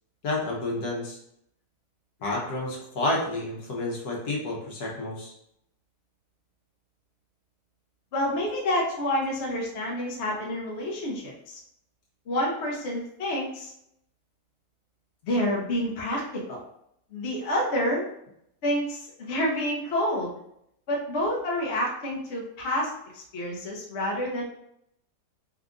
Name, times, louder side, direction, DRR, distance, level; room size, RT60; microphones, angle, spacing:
voice 1, 0.2-1.2 2.2-5.3, left 2 dB, 70° left, -3 dB, 1.4 m, -30 dB
voice 2, 8.1-11.6 12.3-13.7 15.2-16.6 17.1-18.0 18.6-20.3 20.9-24.4, left 1 dB, 50° left, -2 dB, 1.0 m, -28 dB
4.4 x 2.4 x 3.8 m, 0.74 s
omnidirectional pair, 1.8 m